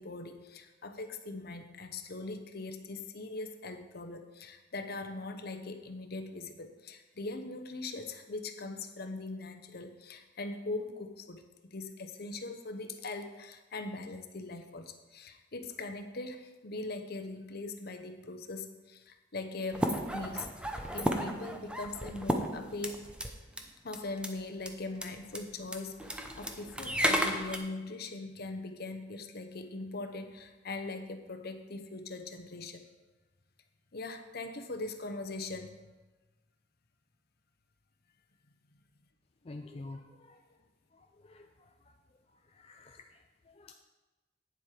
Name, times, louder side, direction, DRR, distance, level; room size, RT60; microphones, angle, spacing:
voice 1, 0.0-23.1 23.8-32.9 33.9-35.8, left 2 dB, 55° left, 7 dB, 0.9 m, -41 dB
sound 1, 19.7-23.3 23.6-23.7 23.9-24.3 24.6-24.7 24.9-25.1 25.3-25.4 25.7-27.6, equal, 5° right, 0.7 m, -33 dB
voice 2, 39.4-40.4 40.9-41.7 42.5-43.7, left 2 dB, 30° left, 4 dB, 0.5 m, -49 dB
9.3 x 7.5 x 4.9 m, 1.2 s
head